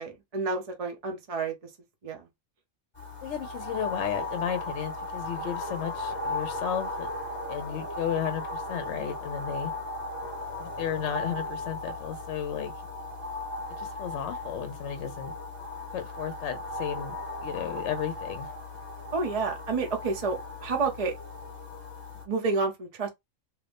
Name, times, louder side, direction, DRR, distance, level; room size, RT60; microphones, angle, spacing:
voice 1, 0.0-1.5 2.0-2.2 19.1-21.1 22.3-23.1, right 4 dB, 35° right, 0.7 m, -29 dB
sound 1, 3.0-22.2, left 2 dB, 20° left, 1.1 m, -37 dB
voice 2, 3.2-7.1 7.5-9.7 10.6-12.7 13.8-15.3 15.9-17.1 17.4-18.5, left 9 dB, 65° left, 0.9 m, -33 dB
2.9 x 2.6 x 3.4 m
omnidirectional pair, 1.4 m